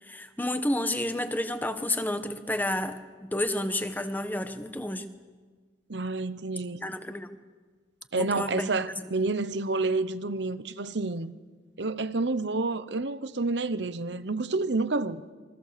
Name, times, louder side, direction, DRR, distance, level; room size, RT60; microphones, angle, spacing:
voice 1, 0.0-5.1 6.8-7.4 8.1-8.7, left 1 dB, 10° left, 1.2 m, -30 dB
voice 2, 5.9-6.8 8.1-11.3 11.8-15.2, right 3 dB, 65° right, 1.0 m, -29 dB
27.5 x 23.5 x 6.9 m
head